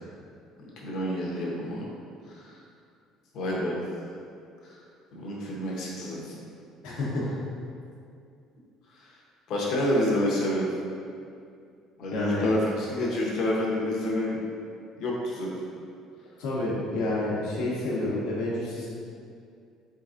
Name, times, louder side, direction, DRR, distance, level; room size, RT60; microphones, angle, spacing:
voice 1, 0.6-1.9 2.3-2.6 3.3-3.8 4.6-4.8 5.1-6.4 8.9-9.1 9.5-10.7 12.0-14.4 15.0-15.5, left 1 dB, 65° left, -4 dB, 0.8 m, -28 dB
voice 2, 6.8-7.2 12.1-12.5 16.4-18.9, left 2 dB, 85° left, -6 dB, 1.0 m, -29 dB
3.7 x 3.4 x 2.5 m, 2.4 s
cardioid pair, 105°, 0 cm